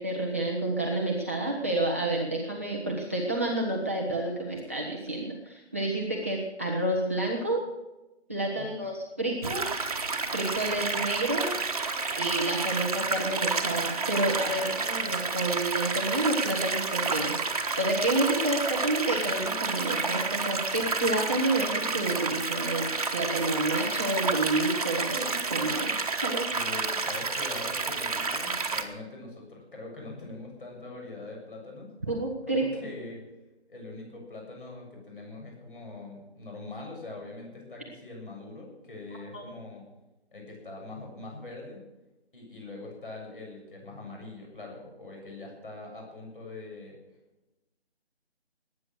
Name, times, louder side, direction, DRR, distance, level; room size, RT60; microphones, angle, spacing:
voice 1, 0.0-7.6 8.3-9.8 10.3-11.5 12.2-17.4 17.8-25.9 26.2-26.5 32.1-32.7 39.3-39.4, right 2 dB, 10° right, -2 dB, 0.8 m, -29 dB
sound 1, 9.4-28.8, right 4 dB, 35° right, 1.3 m, -30 dB
voice 2, 26.5-31.9 32.5-33.2 33.7-39.8 40.3-41.8 42.3-47.0, left 2 dB, 50° left, 0 dB, 7.3 m, -42 dB
19.0 x 9.6 x 6.4 m, 1.0 s
figure-of-eight pair, 170°, 34 cm